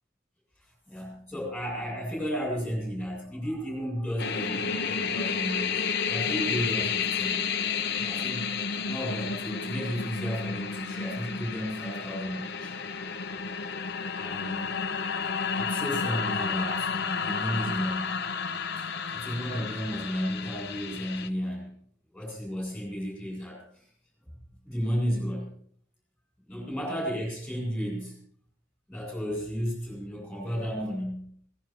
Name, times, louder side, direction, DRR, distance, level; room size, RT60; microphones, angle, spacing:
voice 1, 0.9-5.8 6.1-7.5 8.0-8.5 8.9-12.7 14.1-14.8 15.6-18.2 19.1-21.7 22.1-23.8 24.6-25.5 26.5-28.2 28.9-31.3, equal, ahead, -2 dB, 7.8 m, -33 dB
sound 1, 4.2-21.3, left 6 dB, 60° left, 1.0 m, -31 dB
22.5 x 18.5 x 3.1 m, 0.62 s
head